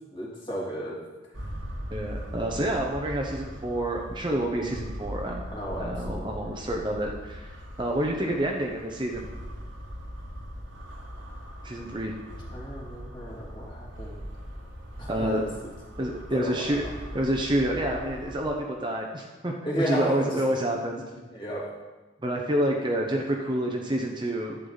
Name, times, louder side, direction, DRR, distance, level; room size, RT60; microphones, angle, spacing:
voice 1, 0.1-1.0 5.5-6.6 12.5-14.3 15.0-15.4 16.3-16.9 19.6-20.4 21.3-21.7, equal, 25° left, -5 dB, 2.8 m, -33 dB
sound 1, 1.3-18.5, equal, 85° right, 1.7 m, -40 dB
voice 2, 1.9-5.4 5.8-9.3 11.6-12.2 15.1-15.4 16.0-19.5 19.9-21.0 22.2-24.6, right 1 dB, 25° right, 0 dB, 0.9 m, -28 dB
11.5 x 8.2 x 4.0 m, 1.2 s
head